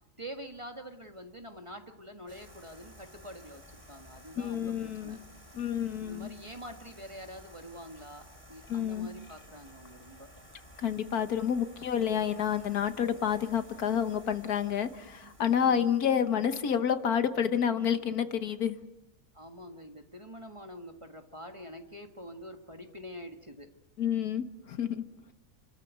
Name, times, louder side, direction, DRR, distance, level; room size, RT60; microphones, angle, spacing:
voice 1, 0.2-5.2 6.0-10.3 15.2-15.3 15.6-16.0 19.3-23.7, equal, 20° right, 5 dB, 1.5 m, -46 dB
sound 1, 2.3-17.7, equal, 5° left, 4.5 m, -54 dB
voice 2, 4.4-5.2 5.5-6.3 8.7-9.1 10.8-18.8 24.0-25.0, left 8 dB, 70° left, 10 dB, 1.6 m, -29 dB
28.5 x 13.5 x 9.3 m, 0.90 s
omnidirectional pair, 1.7 m